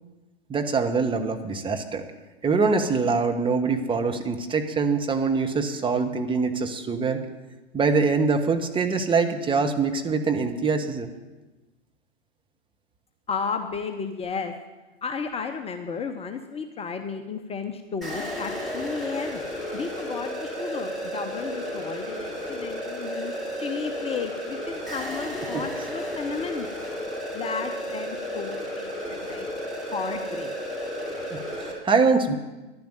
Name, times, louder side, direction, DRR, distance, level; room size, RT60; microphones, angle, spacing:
voice 1, 0.5-2.0 2.4-7.2 7.7-11.1 25.5-25.6 31.3-32.4, right 4 dB, 15° right, 5 dB, 1.2 m, -24 dB
voice 2, 13.3-14.5 15.0-19.4 19.7-26.7 27.3-29.5 29.8-30.6, left 5 dB, 20° left, 7 dB, 0.8 m, -33 dB
sound 1, 18.0-31.7, equal, ahead, 4.7 m, -33 dB
11.5 x 10.5 x 9.0 m, 1.1 s
figure-of-eight pair, 100°, 32 cm